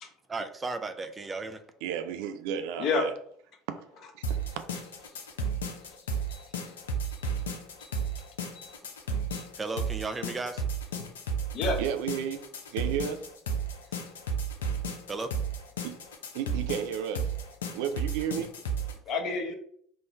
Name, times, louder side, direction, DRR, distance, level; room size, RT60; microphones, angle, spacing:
voice 1, 0.3-1.6 9.6-10.6 15.1-15.3, right 3 dB, 25° right, 9 dB, 0.6 m, -34 dB
voice 2, 1.8-3.1 3.7-3.8 4.1-4.6 11.8-12.4 12.7-13.3 15.8-15.9 16.3-17.3 17.7-18.5, right 8 dB, 75° right, 8 dB, 0.5 m, -33 dB
sound 1, 4.2-18.9, right 3 dB, 90° left, 0.7 m, -33 dB
voice 3, 6.3-6.8 7.1-7.2 7.8-8.0 8.5-8.8 9.3-9.4 11.5-11.8 19.1-19.5, left 3 dB, 55° left, 3 dB, 1.0 m, -31 dB
3.8 x 2.6 x 4.4 m, 0.63 s
hypercardioid pair, 75°, 0 cm